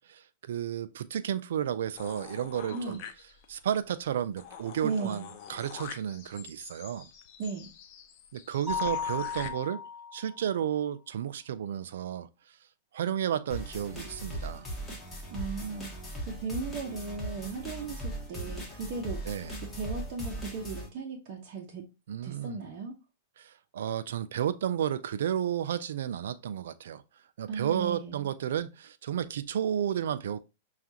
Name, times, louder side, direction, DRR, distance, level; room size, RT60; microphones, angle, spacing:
voice 1, 0.5-3.0 3.5-7.1 8.3-9.8 10.1-12.3 12.9-14.7 19.3-19.6 22.1-22.6 23.4-27.0 27.4-30.4, right 9 dB, 75° right, 0.3 m, -32 dB
sound 1, 2.0-3.6 4.0-4.1 4.4-9.5, left 8 dB, 45° left, 0.6 m, -46 dB
voice 2, 2.7-3.0 4.8-5.3 7.4-7.7 15.3-19.2 19.7-21.8 22.2-23.0 27.5-28.3, right 4 dB, 45° right, 0.8 m, -36 dB
Mallet percussion, 8.7-10.5, left 6 dB, 10° right, 0.7 m, -35 dB
sound 2, 13.5-20.9, right 1 dB, 10° left, 1.3 m, -39 dB
5.8 x 2.4 x 2.7 m
hypercardioid pair, 130°, 0 cm